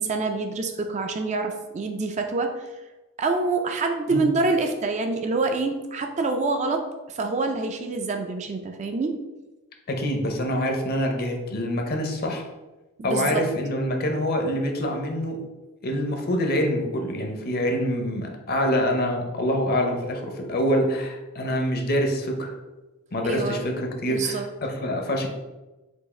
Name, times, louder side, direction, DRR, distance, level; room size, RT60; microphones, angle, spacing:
voice 1, 0.0-2.7 3.2-9.2 13.0-13.5 23.3-23.6 24.1-24.5, right 3 dB, 30° right, 4 dB, 0.3 m, -26 dB
voice 2, 9.9-12.4 13.0-15.4 15.8-22.6 23.1-25.3, equal, 45° left, 3 dB, 0.7 m, -25 dB
4.6 x 2.4 x 4.2 m, 1.1 s
head